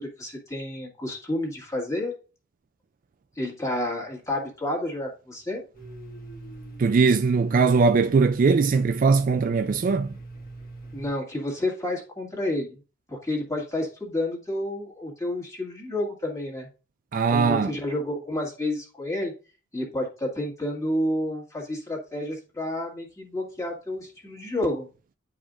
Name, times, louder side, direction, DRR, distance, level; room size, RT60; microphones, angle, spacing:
voice 1, 0.0-2.1 3.4-5.6 10.9-12.8 13.1-16.7 17.3-19.3 19.7-24.9, left 1 dB, 15° left, 1.9 m, -30 dB
Domestic sounds home sounds, 5.7-11.1, right 2 dB, 40° left, 1.6 m, -42 dB
voice 2, 6.8-10.1 17.1-17.7, right 4 dB, 40° right, 0.3 m, -20 dB
10.5 x 4.8 x 2.5 m
head